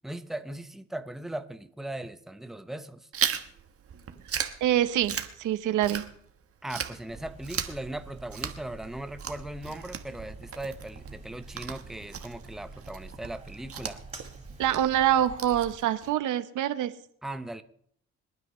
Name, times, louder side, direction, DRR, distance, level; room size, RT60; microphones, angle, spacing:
voice 1, 0.0-3.1 6.6-14.0 17.2-17.6, right 1 dB, ahead, 10 dB, 0.8 m, -38 dB
Chewing mastication, 3.1-6.4 6.7-16.1, right 7 dB, 50° right, 1.3 m, -37 dB
voice 2, 4.6-6.0 14.6-16.9, right 11 dB, 80° right, 12 dB, 0.9 m, -25 dB
sound 1, 7.1-15.8, right 3 dB, 20° right, 3.4 m, -47 dB
26.5 x 9.4 x 3.1 m, 0.64 s
cardioid pair, 90°, 30 cm